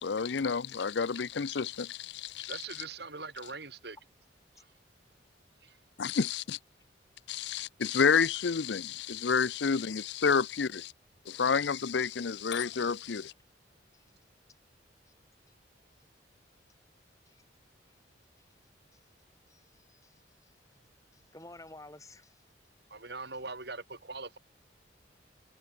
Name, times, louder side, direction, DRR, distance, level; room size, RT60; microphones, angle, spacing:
voice 1, 0.0-2.6 6.0-6.6 7.3-10.9 11.3-13.3, left 6 dB, 65° left, 0.5 m, -29 dB
voice 2, 2.5-4.0 4.6-4.7 5.6-5.8 22.9-24.4, right 3 dB, 60° right, 3.3 m, -42 dB
voice 3, 19.5-20.5 21.1-22.4, left 2 dB, 15° left, 5.8 m, -53 dB
head